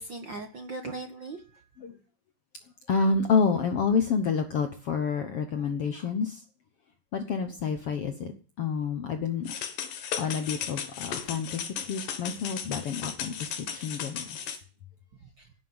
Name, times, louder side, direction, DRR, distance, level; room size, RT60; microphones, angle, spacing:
voice 1, 0.0-1.7 10.0-10.2 15.4-15.5, right 2 dB, 50° right, 5 dB, 1.5 m, -40 dB
voice 2, 2.9-6.4 7.1-8.3 8.6-9.5 10.2-14.5, left 5 dB, 65° left, 8 dB, 1.5 m, -29 dB
sound 1, 9.5-14.6, left 8 dB, 85° left, 3.4 m, -36 dB
17.0 x 7.6 x 9.6 m, 0.41 s
omnidirectional pair, 3.9 m